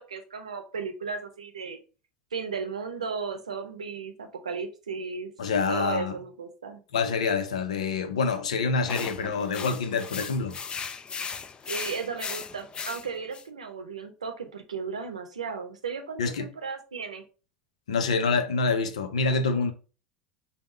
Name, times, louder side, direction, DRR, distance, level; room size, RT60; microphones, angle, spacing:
voice 1, 0.0-1.8 2.3-5.3 5.7-6.8 11.6-17.2, right 5 dB, 90° right, 0.7 m, -35 dB
voice 2, 5.4-6.1 6.9-10.6 16.2-16.5 17.9-19.7, left 4 dB, 80° left, 0.6 m, -26 dB
sound 1, 8.9-13.4, left 6 dB, 25° left, 0.4 m, -37 dB
3.5 x 2.2 x 4.4 m
hypercardioid pair, 80°, 3 cm